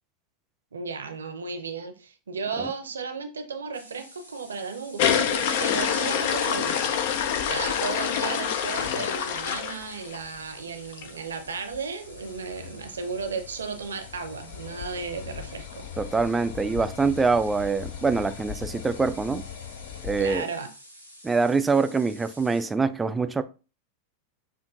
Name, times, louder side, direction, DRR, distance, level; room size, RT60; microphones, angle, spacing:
voice 1, 0.7-6.9 7.5-15.8 20.2-20.7, right 5 dB, 70° right, 0.6 m, -35 dB
sound 1, 3.7-22.7, equal, 85° left, 0.9 m, -50 dB
sound 2, 5.0-10.4 10.9-11.1 11.5-11.6 11.7-11.8 12.1-20.4, left 8 dB, 50° left, 0.4 m, -29 dB
voice 2, 16.0-19.4 20.0-20.4 21.2-23.4, right 4 dB, 10° right, 0.3 m, -24 dB
6.9 x 2.5 x 2.5 m
figure-of-eight pair, 90°, 0 cm